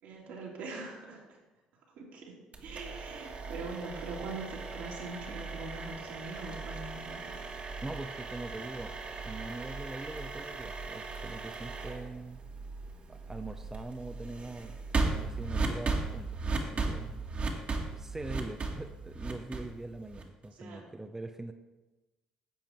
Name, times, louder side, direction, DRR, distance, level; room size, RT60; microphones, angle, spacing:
voice 1, 0.0-1.4 1.9-7.3 20.5-20.9, right 3 dB, 75° right, -3 dB, 3.3 m, -43 dB
sound 1, 2.5-20.5, right 3 dB, 45° right, 1.9 m, -37 dB
voice 2, 7.8-9.0 9.2-12.4 13.1-14.7 15.0-17.2 17.9-21.5, right 2 dB, 15° right, 6 dB, 0.7 m, -42 dB
11.0 x 7.2 x 4.6 m, 1.2 s
supercardioid pair, 65°, 3 cm